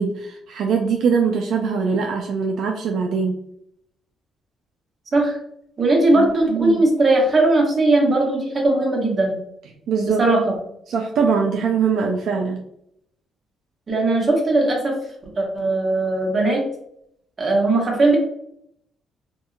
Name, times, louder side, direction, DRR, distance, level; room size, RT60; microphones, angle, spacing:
voice 1, 0.0-3.4 6.1-6.8 9.9-10.2 10.9-12.6, right 5 dB, 70° right, 2 dB, 0.3 m, -22 dB
voice 2, 5.8-9.4 10.2-10.5 13.9-15.0 15.4-16.6 17.4-18.2, right 2 dB, 40° right, -1 dB, 1.0 m, -18 dB
2.7 x 2.6 x 2.3 m, 0.73 s
cardioid pair, 90°, 0 cm